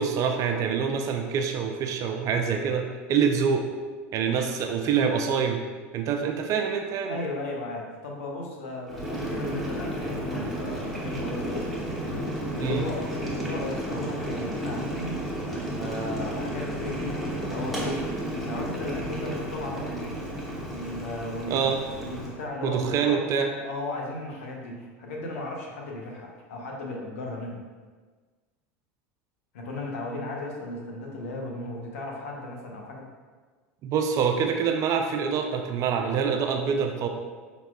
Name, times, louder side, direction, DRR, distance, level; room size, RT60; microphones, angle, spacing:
voice 1, 0.0-3.7 4.1-5.6 5.9-7.2 12.6-12.9 21.5-21.8 22.6-23.5 33.8-37.1, right 6 dB, 50° right, 4 dB, 0.5 m, -25 dB
voice 2, 7.1-12.0 12.5-15.2 15.7-18.0 18.4-20.3 20.6-23.3 23.6-27.6 29.5-33.1, left 2 dB, 80° left, 0 dB, 0.8 m, -36 dB
Boiling, 8.9-22.4, right 1 dB, ahead, 1.2 m, -32 dB
5.7 x 4.0 x 2.3 m, 1.4 s
hypercardioid pair, 90°, 7 cm